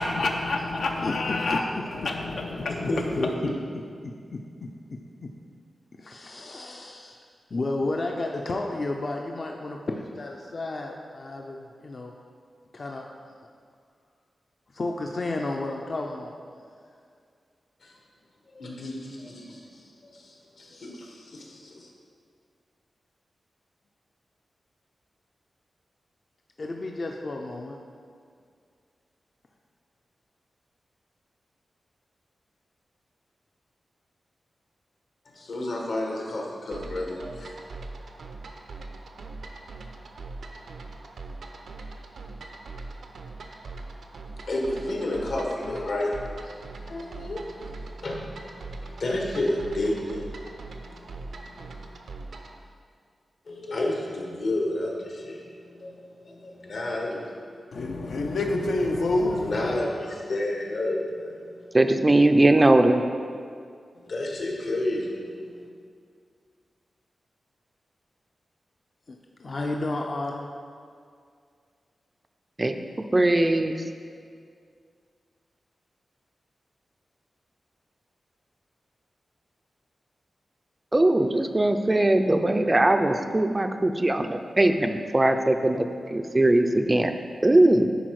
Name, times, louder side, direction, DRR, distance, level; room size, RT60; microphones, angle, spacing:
voice 1, 0.0-1.6 2.0-2.8 57.7-59.7, left 2 dB, 90° left, 1 dB, 0.7 m, -27 dB
voice 2, 1.4-1.8 2.8-2.9 4.0-4.1 5.2-5.3 6.0-7.2 7.5-12.1 12.7-13.0 14.7-16.3 26.6-27.8 69.1-70.5, left 2 dB, 40° left, 1 dB, 0.5 m, -32 dB
voice 3, 2.7-3.5 17.8-17.9 18.5-21.9 35.3-37.5 44.5-46.2 46.4-52.0 53.5-57.3 59.0-61.8 62.6-62.7 63.9-65.7, left 1 dB, 70° left, -1 dB, 1.3 m, -31 dB
sound 1, 36.7-52.6, right 3 dB, 85° right, 0.6 m, -41 dB
voice 4, 61.7-63.0 72.6-72.8 73.1-73.8 80.9-87.1 87.4-87.9, right 1 dB, 20° right, 7 dB, 0.3 m, -20 dB
10.5 x 4.3 x 4.7 m, 2.2 s
wide cardioid pair, 145°, 0 cm